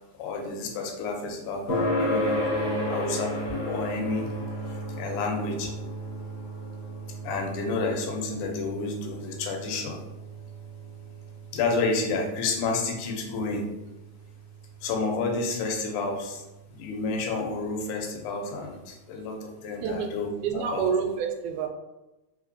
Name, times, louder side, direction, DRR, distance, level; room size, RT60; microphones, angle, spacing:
voice 1, 0.1-4.3 4.7-5.7 7.2-10.0 11.5-13.7 14.8-16.4 16.7-20.9, left 3 dB, 85° left, 2 dB, 2.2 m, -30 dB
sound 1, 1.7-16.6, equal, 60° left, 1.1 m, -34 dB
voice 2, 19.8-20.1 20.4-21.7, right 7 dB, 90° right, 5 dB, 2.1 m, -28 dB
4.3 x 3.5 x 2.6 m, 1.0 s
omnidirectional pair, 3.5 m